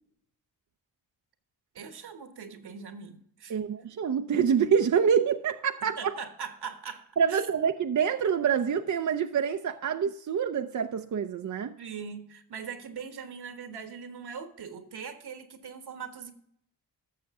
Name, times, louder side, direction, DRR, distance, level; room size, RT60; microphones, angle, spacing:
voice 1, 1.7-3.7 6.0-7.4 11.8-16.3, right 6 dB, 70° right, 1.4 m, -41 dB
voice 2, 3.5-6.1 7.2-11.8, right 7 dB, 45° right, 0.6 m, -26 dB
13.0 x 6.6 x 3.6 m
cardioid pair, 55°, 41 cm